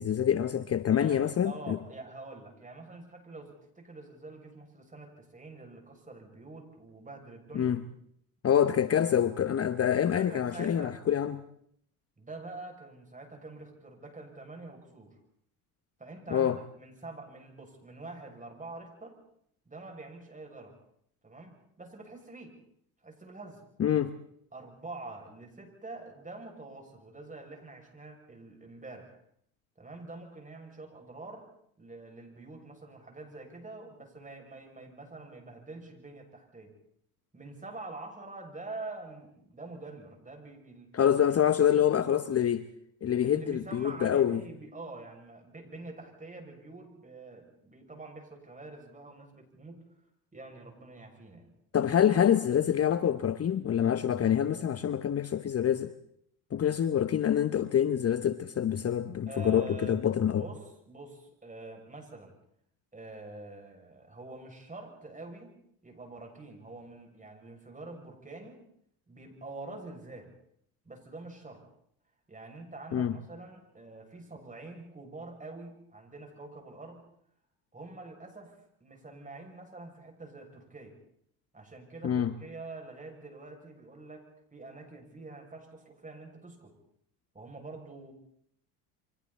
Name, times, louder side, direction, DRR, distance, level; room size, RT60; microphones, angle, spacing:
voice 1, 0.0-1.8 7.5-7.8 8.4-11.4 16.3-16.6 23.8-24.1 40.9-42.7 43.0-44.4 51.7-55.9 56.5-60.4 72.9-73.1 82.0-82.3, left 9 dB, 35° left, 12 dB, 1.1 m, -26 dB
voice 2, 0.9-7.7 10.1-11.0 12.2-15.1 16.0-19.2 19.6-20.8 21.2-22.5 23.0-23.6 24.5-29.2 29.8-31.5 31.8-36.7 37.3-41.0 41.4-42.1 43.2-49.8 50.3-51.5 59.3-60.0 60.3-62.3 62.9-65.5 65.8-68.6 69.1-70.3 70.8-71.6 72.3-77.0 77.7-81.0 81.5-86.7 87.3-88.1, right 2 dB, 15° right, 3 dB, 7.0 m, -46 dB
29.0 x 24.5 x 4.3 m, 0.68 s
hypercardioid pair, 70°, 44 cm